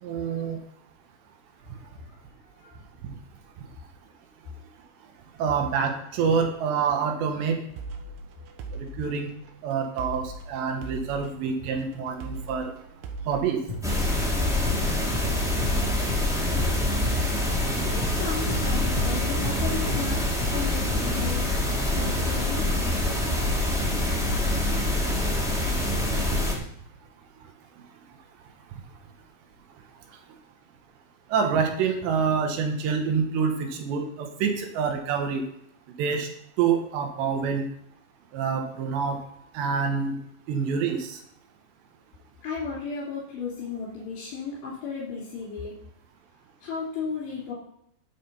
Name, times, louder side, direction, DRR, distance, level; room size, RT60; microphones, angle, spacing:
voice 1, 0.0-0.6 1.7-1.8 3.0-3.2 3.6-3.7 5.4-7.6 8.7-9.3 9.6-12.7 13.3-13.6 24.9-25.0 26.3-26.4 27.4-27.5 28.7-28.8 31.3-35.5 36.0-36.3 36.6-37.7 38.3-39.2 39.5-40.2 40.5-41.2, right 6 dB, 75° right, 4 dB, 3.4 m, -27 dB
sound 1, 7.8-25.5, right 3 dB, 90° right, 3.7 m, -41 dB
sound 2, 13.7-21.2, left 2 dB, 20° left, 5.1 m, -34 dB
sound 3, 13.8-26.5, left 1 dB, ahead, 1.0 m, -25 dB
voice 2, 17.9-20.2 20.5-21.5 21.9-22.7 42.4-45.7 46.6-47.5, left 5 dB, 70° left, -6 dB, 5.3 m, -34 dB
13.0 x 7.7 x 5.6 m, 0.73 s
omnidirectional pair, 5.3 m